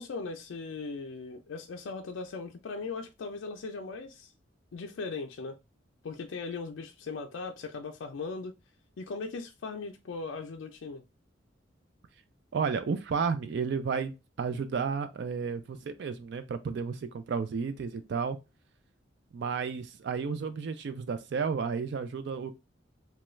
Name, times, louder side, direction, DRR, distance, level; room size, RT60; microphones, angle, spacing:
voice 1, 0.0-4.3 4.7-5.6 6.0-8.5 9.0-11.0, left 4 dB, 90° left, 0.4 m, -38 dB
voice 2, 12.5-18.4 19.3-22.5, right 5 dB, 65° right, 0.3 m, -32 dB
3.0 x 2.3 x 3.0 m
head